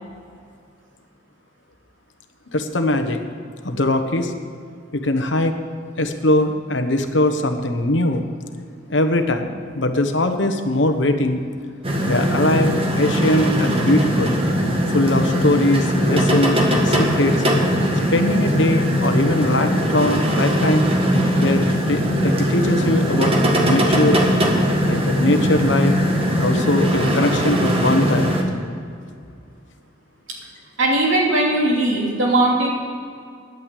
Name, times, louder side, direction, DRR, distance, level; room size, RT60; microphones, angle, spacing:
voice 1, 2.5-3.2 3.6-4.3 4.9-5.5 6.0-8.2 8.9-11.4 12.0-14.4 14.9-17.4 18.1-20.9 21.4-24.2 24.9-25.9 26.3-28.4, left 1 dB, 65° left, 7 dB, 1.1 m, -21 dB
sound 1, 11.8-28.4, equal, 30° right, 1.6 m, -20 dB
voice 2, 30.8-32.7, right 1 dB, 85° right, -2 dB, 3.0 m, -18 dB
10.5 x 9.2 x 8.4 m, 2.4 s
head